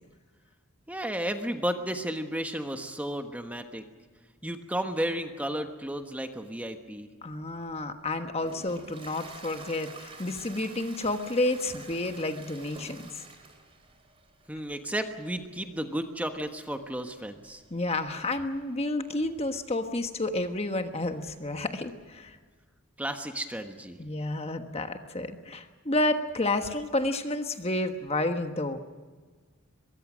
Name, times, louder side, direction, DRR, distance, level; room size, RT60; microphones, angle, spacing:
voice 1, 0.9-3.8 4.4-7.1 14.5-17.6 23.0-24.0, right 1 dB, 5° right, 6 dB, 1.3 m, -33 dB
voice 2, 7.2-13.2 17.7-22.4 24.0-28.8, left 2 dB, 30° left, 7 dB, 1.3 m, -30 dB
Toilet flush, 7.7-22.1, right 3 dB, 25° right, 3.9 m, -52 dB
23.0 x 23.0 x 6.3 m, 1.4 s
head